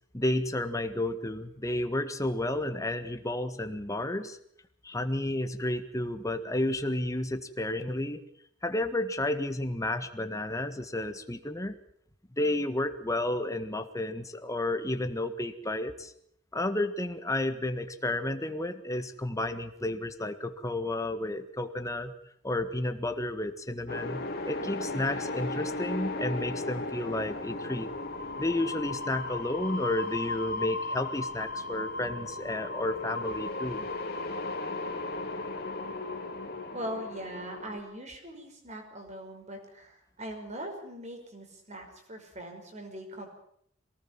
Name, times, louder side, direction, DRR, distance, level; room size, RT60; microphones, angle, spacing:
voice 1, 0.1-4.4 4.8-8.2 8.6-11.8 12.4-16.1 16.5-22.1 22.4-27.9 28.4-33.9, left 1 dB, 15° left, 8 dB, 1.6 m, -31 dB
sound 1, 23.9-37.8, left 2 dB, 55° left, 3.6 m, -36 dB
voice 2, 36.7-43.3, equal, 35° right, 4 dB, 5.5 m, -41 dB
23.0 x 18.5 x 7.5 m, 0.68 s
head